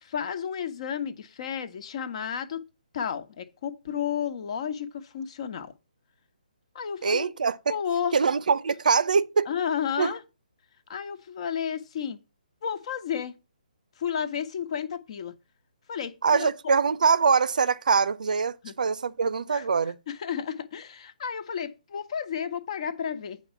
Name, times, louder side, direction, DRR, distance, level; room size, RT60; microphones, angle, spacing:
voice 1, 0.0-2.6 2.9-5.7 6.7-7.3 7.7-8.1 9.5-10.2 10.9-12.2 12.6-13.4 14.0-15.3 15.9-16.5 18.6-18.7 19.5-19.7 20.1-23.4, left 8 dB, 45° left, 1.2 m, -32 dB
voice 2, 7.0-7.7 8.1-9.5 10.0-10.1 16.2-20.0, right 5 dB, 65° right, 0.6 m, -23 dB
8.3 x 4.6 x 7.0 m
figure-of-eight pair, 145°, 5 cm